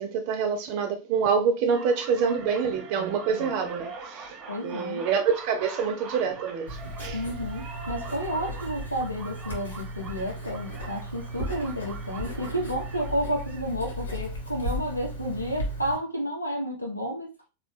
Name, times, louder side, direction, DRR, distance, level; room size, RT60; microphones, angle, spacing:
voice 1, 0.0-7.2, right 6 dB, 45° right, 0.6 m, -27 dB
sound 1, 1.7-13.7, right 4 dB, 30° right, 1.3 m, -43 dB
voice 2, 4.5-5.0 7.1-17.3, equal, 90° left, 1.2 m, -31 dB
Writing, 6.7-16.0, right 1 dB, 70° left, 1.6 m, -36 dB
4.1 x 3.0 x 3.2 m
figure-of-eight pair, 90°, 0 cm